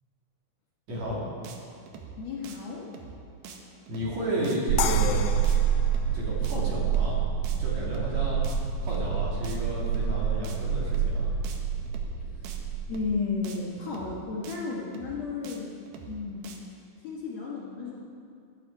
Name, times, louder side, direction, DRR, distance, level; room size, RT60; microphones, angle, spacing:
voice 1, 0.9-1.2 3.9-5.3 6.1-7.2 7.6-8.4 8.8-11.4, equal, 50° right, -6 dB, 3.8 m, -32 dB
sound 1, 0.9-1.2 1.4-1.6 1.9-2.2 2.4-2.6 2.9-3.2 3.4-3.6 3.9-4.2 4.4-4.6 4.9-5.2 5.4-5.6 5.9-6.2 6.4-6.6 6.9-7.2 7.4-7.6 7.9-8.2 8.4-8.6 8.9-9.2 9.4-9.6 9.9-10.2 10.4-10.6 10.9-11.2 11.4-11.6 11.9-12.2 12.4-12.6 12.9-13.2 13.4-13.6 13.9-14.2 14.4-14.6 14.9-15.2 15.4-15.6 15.9-16.2 16.4-16.6, right 6 dB, 70° right, 2.5 m, -44 dB
voice 2, 2.2-2.9 12.3-12.5 12.9-15.7 16.1-16.7 17.0-18.0, left 4 dB, 60° left, -4 dB, 2.2 m, -33 dB
sound 2, 4.7-13.2, right 8 dB, 85° right, 1.7 m, -27 dB
sound 3, 4.8-7.8, left 9 dB, 85° left, 1.8 m, -35 dB
14.0 x 12.0 x 4.8 m, 2.4 s
omnidirectional pair, 4.2 m